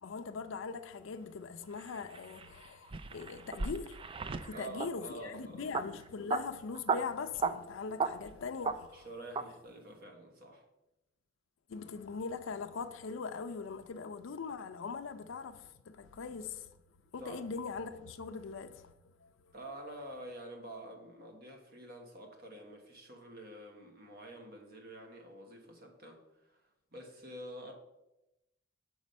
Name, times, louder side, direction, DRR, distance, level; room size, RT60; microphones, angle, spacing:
voice 1, 0.0-4.1 4.4-9.1 11.7-16.7 17.1-19.5, left 5 dB, 80° left, 0.4 m, -41 dB
sound 1, 1.8-4.9 5.7-5.8 6.1-6.4 6.7-7.0 7.3-7.5 8.0-8.3 8.6-8.7 9.3-9.4, right 5 dB, 25° right, 0.3 m, -34 dB
voice 2, 4.5-5.8 8.9-10.7 17.2-17.4 19.5-26.6 26.9-27.7, right 1 dB, 50° right, 1.3 m, -48 dB
6.2 x 4.9 x 5.3 m
head